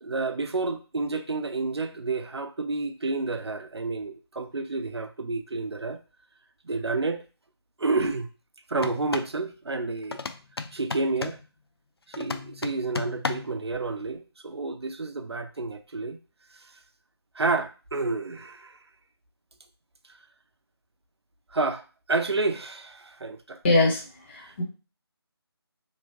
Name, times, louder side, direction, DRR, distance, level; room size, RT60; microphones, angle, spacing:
voice 1, 0.0-6.0 6.6-7.2 7.8-8.3 8.7-10.2 10.7-11.4 12.1-16.2 16.5-16.7 17.3-18.8 21.5-23.6 24.4-24.6, right 3 dB, 80° right, 0.5 m, -30 dB
sound 1, 8.7-9.4 10.1-11.5 12.1-13.6, left 4 dB, 70° left, 0.4 m, -34 dB
voice 2, 23.6-24.6, left 2 dB, 25° left, 0.7 m, -23 dB
2.9 x 2.8 x 2.8 m
figure-of-eight pair, 160°, 14 cm